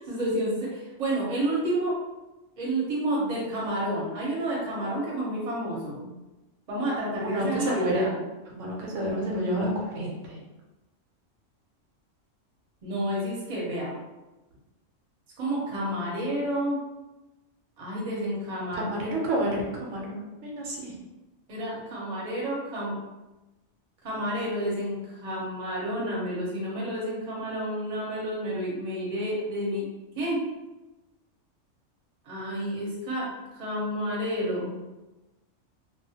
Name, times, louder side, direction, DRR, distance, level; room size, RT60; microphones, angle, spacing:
voice 1, 0.0-2.0 2.6-6.1 6.7-8.1 12.8-14.0 15.4-16.8 17.8-18.9 21.5-23.0 24.0-29.8 30.1-30.4 32.2-34.7, right 1 dB, 40° right, -5 dB, 0.7 m, -30 dB
voice 2, 7.3-8.1 8.5-10.4 18.8-20.9, right 1 dB, 80° right, -2 dB, 1.0 m, -29 dB
2.3 x 2.1 x 2.7 m, 1.1 s
omnidirectional pair, 1.3 m